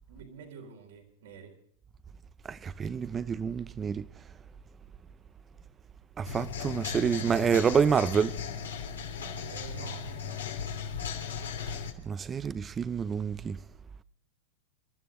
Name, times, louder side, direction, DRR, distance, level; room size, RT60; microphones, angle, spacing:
voice 1, 0.1-1.5 9.5-10.7, right 6 dB, 75° right, 3.9 m, -49 dB
voice 2, 2.5-4.1 6.2-8.3 12.1-13.6, right 6 dB, 25° right, 0.6 m, -28 dB
sound 1, 6.2-11.9, left 6 dB, 90° left, 2.8 m, -37 dB
28.5 x 12.5 x 3.8 m
hypercardioid pair, 110°, 0 cm